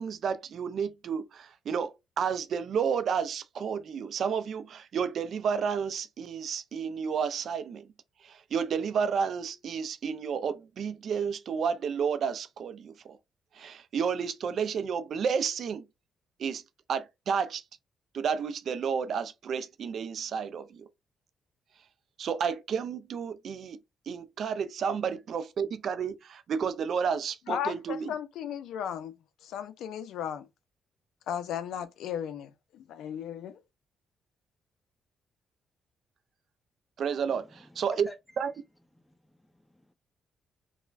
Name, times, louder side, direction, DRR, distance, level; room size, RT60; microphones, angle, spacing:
voice 1, 0.0-7.8 8.2-13.2 13.6-15.8 16.4-16.6 16.9-17.6 18.1-20.9 22.2-23.8 24.1-28.1 37.0-38.1 38.4-38.5, right 6 dB, 60° right, 0.3 m, -31 dB
voice 2, 27.5-29.1 29.4-30.5 31.3-33.6, left 9 dB, 80° left, 0.3 m, -35 dB
voice 3, 37.2-38.2 38.9-39.9, equal, 5° left, 0.5 m, -50 dB
3.2 x 2.1 x 2.3 m
cardioid pair, 90°, 0 cm